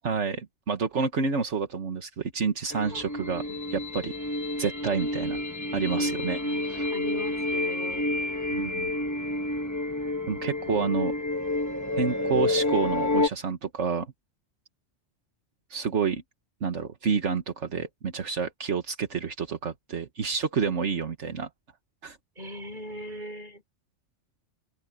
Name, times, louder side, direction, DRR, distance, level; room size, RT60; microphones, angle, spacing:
voice 1, 0.0-3.4 3.7-4.1 4.6-5.4 5.7-6.9 8.5-8.9 10.3-11.1 12.0-14.1 15.7-16.2 16.6-21.5 22.0-22.2, right 5 dB, 75° right, 1.7 m, -29 dB
sound 1, 2.7-13.3, left 2 dB, 15° left, 1.2 m, -29 dB
voice 2, 2.9-3.6 5.9-8.1 10.4-10.9 11.5-11.6 20.7-20.8 22.4-23.6, equal, 40° right, 3.9 m, -41 dB
open air
omnidirectional pair, 1.2 m